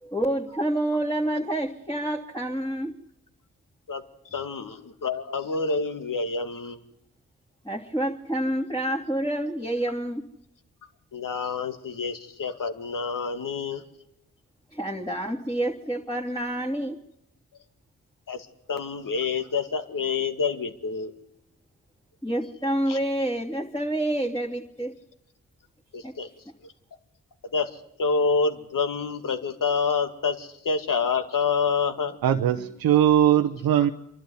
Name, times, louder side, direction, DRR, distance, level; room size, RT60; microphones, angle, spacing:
voice 1, 0.0-2.9 7.6-10.2 14.7-17.0 22.2-24.9 26.0-26.1, right 1 dB, 10° left, -2 dB, 2.9 m, -28 dB
voice 2, 4.3-6.8 11.1-13.8 18.3-21.1 22.9-23.0 25.9-26.3 27.5-27.7 28.0-32.2, left 5 dB, 65° left, 7 dB, 2.1 m, -27 dB
voice 3, 32.2-33.9, right 10 dB, 80° right, 7 dB, 0.8 m, -20 dB
26.5 x 12.0 x 9.7 m, 0.85 s
supercardioid pair, 45°, 35 cm